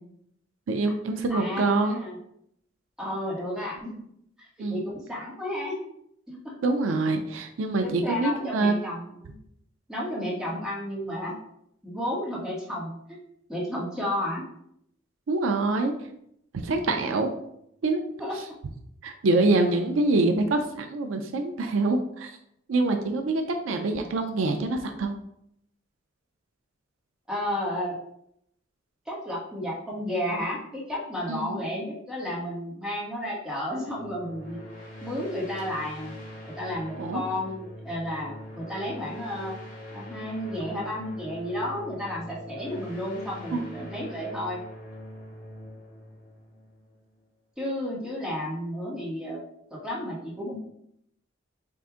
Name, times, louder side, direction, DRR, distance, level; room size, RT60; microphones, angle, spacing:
voice 1, 0.7-2.0 4.6-4.8 6.6-8.8 15.3-15.9 16.5-17.3 17.8-18.0 19.0-22.3 22.7-25.1 31.3-31.6 37.0-37.2 43.5-43.6, right 2 dB, 80° right, 5 dB, 0.4 m, -25 dB
voice 2, 1.3-2.2 3.0-3.9 4.7-5.8 6.3-6.5 7.8-9.3 9.9-11.3 11.8-12.9 13.5-14.4 18.2-18.4 27.3-28.0 29.1-34.6 35.0-36.1 36.5-39.6 39.9-44.6 47.6-49.4 49.7-50.6, left 1 dB, 5° right, -5 dB, 1.3 m, -32 dB
sound 1, 33.9-47.2, left 1 dB, 45° left, 1.4 m, -43 dB
4.6 x 2.5 x 3.6 m, 0.74 s
head